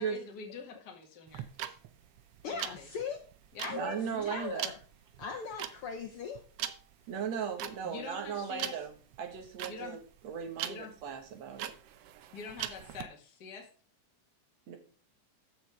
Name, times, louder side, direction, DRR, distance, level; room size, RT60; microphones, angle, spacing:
voice 1, 0.0-1.5 2.4-2.9 3.5-4.3 7.6-8.8 9.7-10.0 10.6-10.9 12.3-13.7, left 5 dB, 35° left, 1 dB, 2.1 m, -45 dB
sound 1, 1.3-13.0, right 11 dB, 85° right, 1.3 m, -41 dB
voice 2, 2.4-3.2 3.6-4.8 5.2-6.4, left 6 dB, 70° left, 3 dB, 1.3 m, -39 dB
voice 3, 3.7-4.7 7.1-8.9 9.2-10.0 10.2-11.7 14.7-14.8, right 7 dB, 60° right, 4 dB, 2.7 m, -37 dB
14.0 x 6.3 x 3.6 m, 0.40 s
omnidirectional pair, 3.5 m